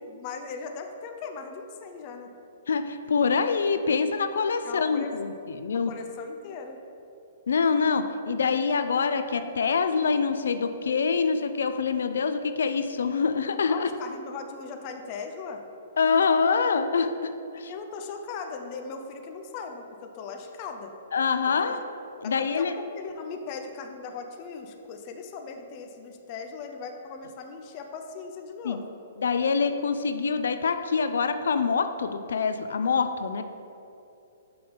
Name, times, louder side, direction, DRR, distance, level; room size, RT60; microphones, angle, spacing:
voice 1, 0.1-2.3 4.6-5.1 5.7-6.8 13.7-15.6 17.7-20.9 21.5-21.8 22.2-28.9, left 5 dB, 25° left, 4 dB, 0.4 m, -39 dB
voice 2, 2.7-5.9 7.5-13.9 16.0-17.7 21.1-21.8 22.2-22.7 28.6-28.8 29.2-33.4, left 5 dB, 80° left, 10 dB, 0.4 m, -25 dB
5.9 x 5.3 x 5.1 m, 2.7 s
hypercardioid pair, 175°, 0 cm